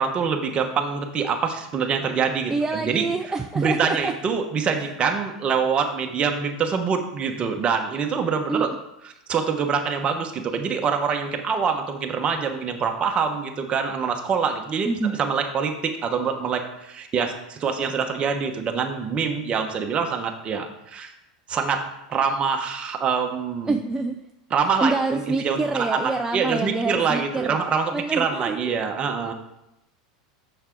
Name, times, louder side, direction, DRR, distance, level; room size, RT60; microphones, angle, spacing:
voice 1, 0.0-3.1 3.5-8.7 9.3-21.1 21.5-23.8 24.5-29.3, right 6 dB, 30° right, 4 dB, 1.1 m, -25 dB
voice 2, 2.5-4.1 8.5-8.7 14.8-15.1 23.7-24.2 24.8-27.6 27.9-28.7, right 3 dB, 15° right, 4 dB, 0.5 m, -26 dB
6.4 x 6.0 x 4.6 m, 0.86 s
hypercardioid pair, 110°, 4 cm